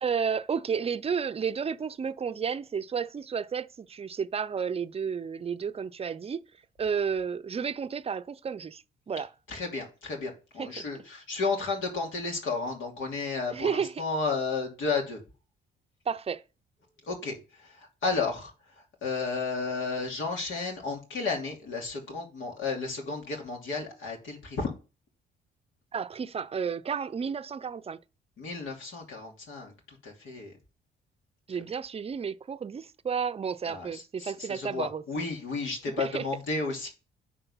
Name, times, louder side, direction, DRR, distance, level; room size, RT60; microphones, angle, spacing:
voice 1, 0.0-6.4 6.8-9.3 10.6-10.9 13.5-14.0 16.1-16.4 25.9-28.0 31.5-35.3 36.0-36.3, right 6 dB, 30° right, 0.6 m, -32 dB
voice 2, 9.5-15.2 17.0-18.5 19.0-24.7 28.4-30.5 33.7-36.9, left 4 dB, 75° left, 2.7 m, -33 dB
9.9 x 3.9 x 5.6 m
cardioid pair, 90°, 20 cm